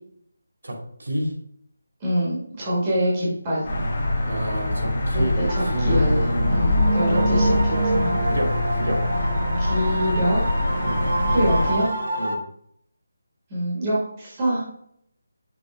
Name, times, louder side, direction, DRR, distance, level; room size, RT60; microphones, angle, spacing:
voice 1, 0.6-1.3 4.0-6.4 7.1-7.2 8.3-9.0 10.8-11.0 12.2-12.4, equal, 65° right, 0 dB, 2.1 m, -29 dB
voice 2, 2.0-3.7 5.1-7.5 7.8-8.2 9.6-10.4 11.3-11.9 13.5-14.6, equal, 15° right, -7 dB, 1.3 m, -25 dB
sound 1, 3.6-11.7, left 1 dB, 25° left, 1.2 m, -24 dB
sound 2, 5.5-12.3, right 2 dB, 45° right, 0.9 m, -27 dB
6.1 x 3.2 x 4.8 m, 0.68 s
figure-of-eight pair, 180°, 0 cm